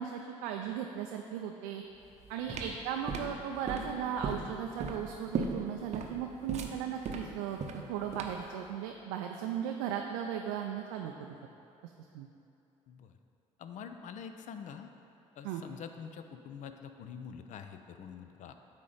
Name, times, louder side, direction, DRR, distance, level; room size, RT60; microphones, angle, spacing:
voice 1, 0.0-1.8 2.3-11.4 12.1-12.3 15.4-15.6, right 8 dB, 70° right, 3 dB, 0.4 m, -37 dB
sound 1, 2.0-8.5, right 5 dB, 45° right, 0.7 m, -37 dB
voice 2, 13.6-14.9 15.4-18.5, left 7 dB, 50° left, 8 dB, 0.5 m, -46 dB
8.4 x 3.0 x 5.0 m, 2.9 s
hypercardioid pair, 55°, 16 cm